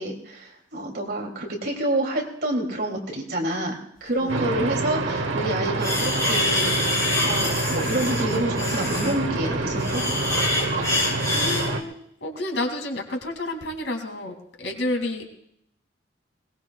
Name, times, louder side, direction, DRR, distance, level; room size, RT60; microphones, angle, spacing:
voice 1, 0.0-6.9 7.2-10.0, right 1 dB, 55° right, 0 dB, 2.9 m, -28 dB
sound 1, 4.3-11.8, right 2 dB, 80° right, 1.2 m, -27 dB
sound 2, 5.8-11.7, left 2 dB, 15° left, 4.2 m, -26 dB
voice 2, 11.3-15.2, left 1 dB, 75° left, 3 dB, 2.6 m, -30 dB
21.5 x 19.0 x 2.4 m, 0.73 s
head